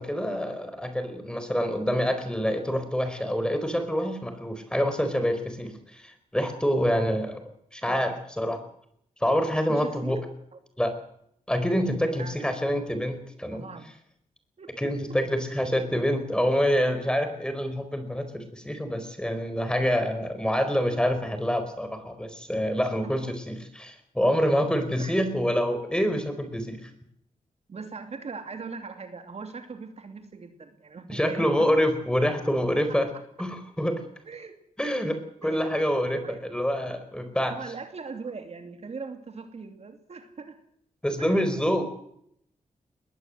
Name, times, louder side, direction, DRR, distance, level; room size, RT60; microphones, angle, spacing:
voice 1, 0.0-7.4 7.7-8.6 9.2-10.2 10.8-10.9 11.5-13.7 14.8-23.5 23.8-26.9 31.1-33.1 33.4-34.0 34.8-37.5 41.0-41.8, equal, 5° left, 8 dB, 4.5 m, -26 dB
voice 2, 7.8-8.2 9.7-10.2 10.5-10.6 12.2-12.4 13.5-13.9 14.6-15.2 23.0-23.4 25.0-25.1 27.7-31.7 32.9-33.2 34.2-34.5 35.4-35.6 36.2-36.4 37.5-40.6 41.2-41.4, right 4 dB, 50° right, 6 dB, 2.9 m, -40 dB
21.0 x 18.5 x 7.8 m, 0.70 s
wide cardioid pair, 125°, 14 cm